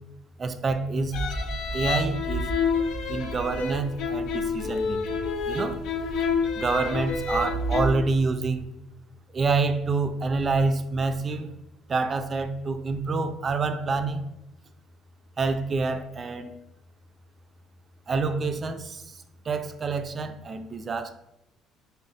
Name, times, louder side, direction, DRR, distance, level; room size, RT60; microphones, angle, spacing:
voice 1, 0.4-1.2 1.7-2.5 3.1-5.2 5.5-5.8 6.5-8.7 9.3-11.5 11.9-14.3 15.4-16.5 18.1-21.1, right 3 dB, 30° right, 9 dB, 0.3 m, -27 dB
sound 1, 1.1-7.9, left 3 dB, 70° left, 0.4 m, -28 dB
3.8 x 2.1 x 3.9 m, 0.90 s
cardioid pair, 125°, 0 cm